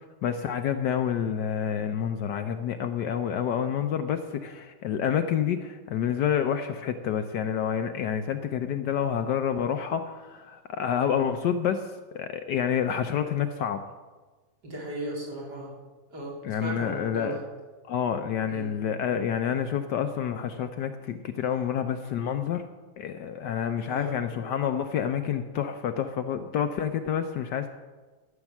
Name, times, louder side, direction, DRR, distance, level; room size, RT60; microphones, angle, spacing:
voice 1, 0.0-11.9 12.1-13.8 16.4-17.4 17.9-22.6 23.0-27.7, left 8 dB, 70° left, 8 dB, 1.1 m, -28 dB
voice 2, 14.6-15.7 16.1-17.4 18.5-18.7 23.8-24.1, right 1 dB, 55° right, -5 dB, 3.9 m, -36 dB
13.0 x 7.2 x 7.2 m, 1.3 s
omnidirectional pair, 2.1 m